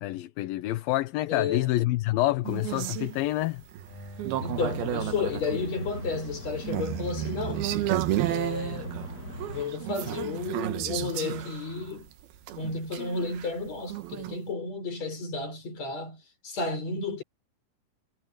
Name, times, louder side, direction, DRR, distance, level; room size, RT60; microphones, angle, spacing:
voice 1, 0.0-3.6, left 16 dB, 75° left, 2.5 m, -27 dB
voice 2, 1.3-1.7 4.4-7.7 8.3-8.9 9.5-12.1 12.5-17.2, left 4 dB, 45° left, 6.5 m, -32 dB
sound 1, 2.4-14.4, right 14 dB, 90° right, 3.1 m, -33 dB
sound 2, 3.8-5.8 6.8-8.3, equal, 5° left, 7.9 m, -49 dB
sound 3, 4.4-9.6, equal, 30° left, 2.3 m, -39 dB
omnidirectional pair, 4.3 m